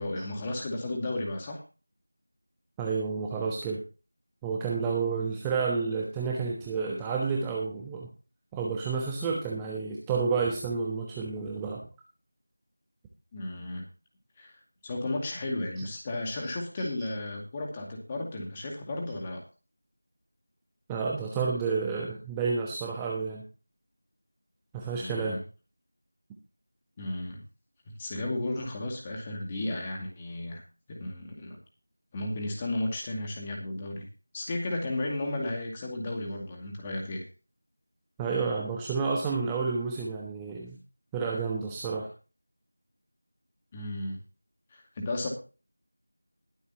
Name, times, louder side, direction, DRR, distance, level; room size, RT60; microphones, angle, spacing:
voice 1, 0.0-1.6 13.3-13.9 14.4-19.4 25.0-25.4 27.0-27.4 28.0-30.6 30.9-31.6 32.1-34.1 34.3-37.2 43.7-44.2 44.7-45.3, left 2 dB, 15° left, 1 dB, 2.3 m, -34 dB
voice 2, 2.8-3.8 4.4-8.1 8.5-11.9 16.8-16.9 20.9-23.4 24.7-25.4 38.2-40.8 41.1-42.1, right 5 dB, 5° right, -2 dB, 1.0 m, -30 dB
21.0 x 8.1 x 2.9 m, 0.33 s
figure-of-eight pair, 175°, 0 cm